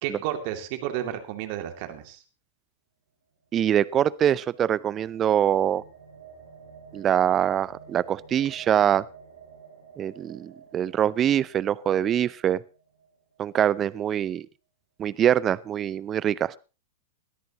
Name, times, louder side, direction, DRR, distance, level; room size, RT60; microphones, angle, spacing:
voice 1, 0.0-2.2, right 11 dB, 50° right, 6 dB, 2.6 m, -32 dB
sound 1, 3.4-13.6, right 6 dB, 80° right, 7.2 m, -50 dB
voice 2, 3.5-5.8 6.9-9.1 10.0-12.6 13.4-14.5 15.0-16.5, right 10 dB, 30° right, 20 dB, 0.6 m, -24 dB
21.5 x 13.5 x 3.0 m, 0.33 s
hypercardioid pair, 105°, 0 cm